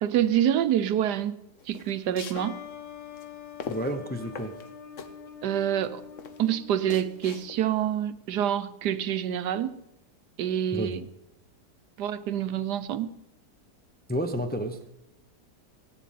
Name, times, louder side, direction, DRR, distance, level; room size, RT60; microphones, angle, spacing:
voice 1, 0.0-1.4 1.7-2.5 5.4-6.0 6.4-9.8 10.4-11.0 12.0-13.1, right 10 dB, 80° right, 13 dB, 1.4 m, -27 dB
sound 1, 1.6-7.9, left 6 dB, 50° left, 1.3 m, -42 dB
sound 2, 2.3-7.8, left 8 dB, 85° left, 1.9 m, -45 dB
voice 2, 3.7-4.6 10.7-10.9 14.1-14.8, equal, 10° left, 7 dB, 0.6 m, -30 dB
17.0 x 6.9 x 9.3 m, 0.91 s
omnidirectional pair, 1.7 m